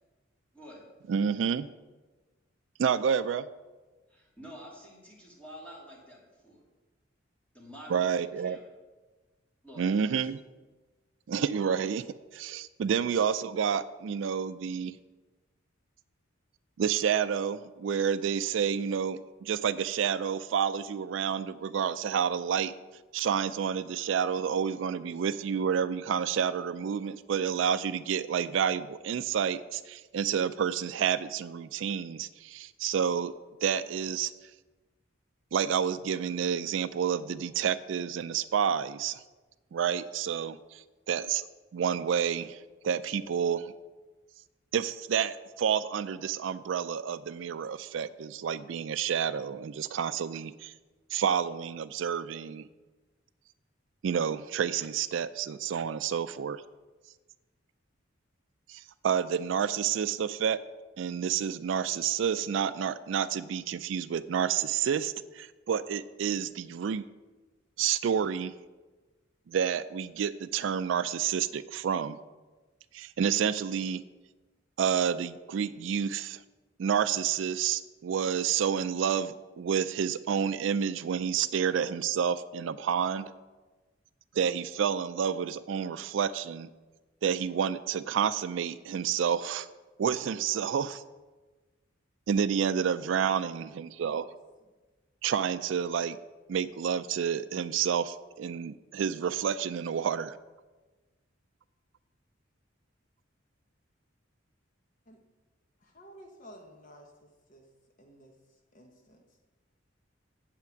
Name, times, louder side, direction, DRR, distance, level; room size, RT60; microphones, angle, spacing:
voice 1, 0.5-0.8 4.1-6.6 7.5-8.7 9.6-10.3 12.8-12.9, equal, 5° left, -5 dB, 2.6 m, -49 dB
voice 2, 1.1-1.7 2.8-3.5 7.9-8.6 9.8-10.4 11.3-12.0 12.3-14.9 16.8-22.7 23.1-33.3 33.6-34.3 35.5-39.2 39.7-41.4 41.7-43.7 44.7-50.7 51.1-52.7 54.0-56.6 58.7-60.6 61.0-67.1 67.8-68.5 69.5-72.2 72.9-74.0 74.8-76.4 76.8-83.3 84.3-86.7 87.2-89.7 90.0-91.0 92.3-94.3 95.2-96.2 96.5-100.4, right 7 dB, 70° right, 13 dB, 0.3 m, -29 dB
voice 3, 105.8-107.7 108.0-109.4, equal, 40° left, 2 dB, 1.0 m, -54 dB
7.7 x 5.8 x 7.8 m, 1.2 s
head